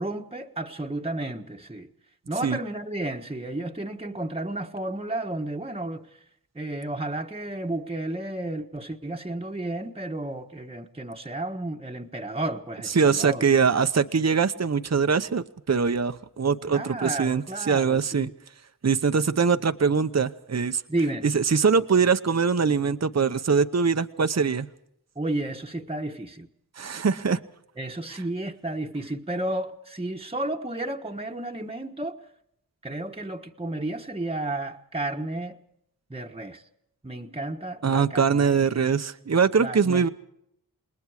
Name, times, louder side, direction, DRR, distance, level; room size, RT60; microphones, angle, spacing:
voice 1, 0.0-1.9 2.3-6.1 6.5-13.4 16.7-18.2 20.9-21.2 25.2-26.5 27.8-32.2 32.8-35.6 36.1-36.6 37.0-38.6 39.6-40.1, right 2 dB, 15° right, 1.3 m, -32 dB
voice 2, 12.9-18.3 18.8-20.8 21.2-24.7 26.8-27.4 28.1-28.2 37.8-40.1, right 5 dB, 45° right, 0.9 m, -23 dB
28.0 x 20.5 x 4.9 m
wide cardioid pair, 60°, 38 cm